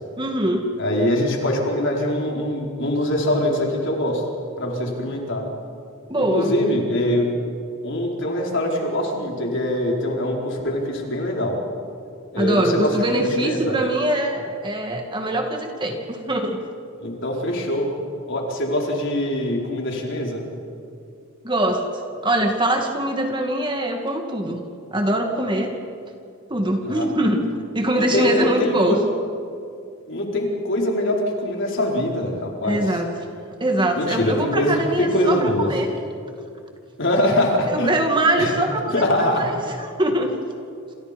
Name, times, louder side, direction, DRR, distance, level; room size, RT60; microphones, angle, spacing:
voice 1, 0.2-0.7 6.1-6.5 12.4-16.6 21.4-24.6 24.9-25.7 26.5-27.4 27.7-29.0 32.6-33.1 33.6-35.9 37.7-40.3, right 1 dB, 20° right, 3 dB, 2.3 m, -23 dB
voice 2, 0.8-4.2 4.6-5.4 6.2-7.3 7.8-11.6 12.3-13.8 17.0-17.9 18.3-20.4 26.8-27.1 27.9-29.0 30.0-32.8 33.9-35.7 37.0-37.9 38.4-38.5 38.9-39.5, left 1 dB, 55° left, -1 dB, 4.8 m, -23 dB
28.5 x 28.0 x 5.3 m, 2.4 s
head